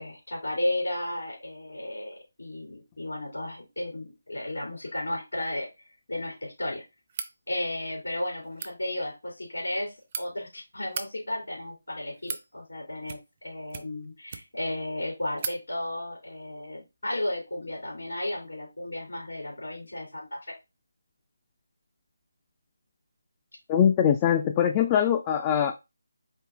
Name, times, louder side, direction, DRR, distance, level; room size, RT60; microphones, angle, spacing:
voice 1, 0.0-5.7 6.1-6.8 7.5-20.5, left 1 dB, 75° left, -2 dB, 2.6 m, -34 dB
sound 1, 7.1-7.4 8.4-8.7 9.7-10.2 10.8-11.1 11.9-12.5 13.0-13.4 13.7-14.7 15.0-15.1 15.4-15.6, right 6 dB, 35° right, 0.5 m, -37 dB
voice 2, 23.7-25.7, left 9 dB, 20° left, 6 dB, 0.4 m, -22 dB
4.5 x 3.0 x 3.6 m, 0.24 s
figure-of-eight pair, 155°, 0 cm